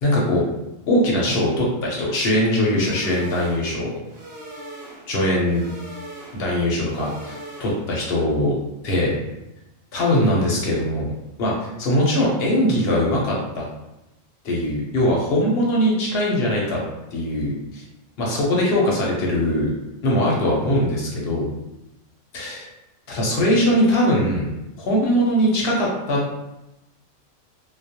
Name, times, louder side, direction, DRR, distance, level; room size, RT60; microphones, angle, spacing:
voice 1, 0.0-0.4 0.9-3.9 5.1-5.6 6.3-8.5 8.8-9.2 9.9-11.1 11.4-11.5 11.8-13.7 14.4-16.8 17.1-17.8 18.2-19.7 20.0-21.5 22.3-22.7 23.1-24.5 24.8-26.2, left 1 dB, 60° left, -3 dB, 0.7 m, -21 dB
sound 1, 2.7-8.1, right 1 dB, 50° right, 0.9 m, -40 dB
2.3 x 2.0 x 2.7 m, 0.93 s
omnidirectional pair, 1.3 m